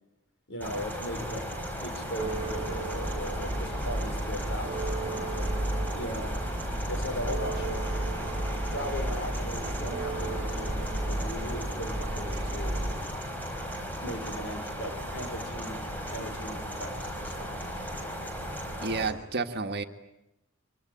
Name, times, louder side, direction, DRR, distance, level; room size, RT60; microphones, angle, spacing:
voice 1, 0.5-1.5 1.8-5.7 5.9-6.4 6.9-8.0 8.7-12.8 14.0-17.5, equal, 60° left, 6 dB, 5.3 m, -38 dB
sound 1, 0.6-19.1, equal, 10° left, 4.6 m, -36 dB
sound 2, 2.2-13.1, right 1 dB, 25° right, 3.0 m, -33 dB
voice 2, 18.8-19.8, right 4 dB, 55° right, 6 dB, 1.7 m, -30 dB
24.5 x 24.5 x 8.8 m, 0.91 s
head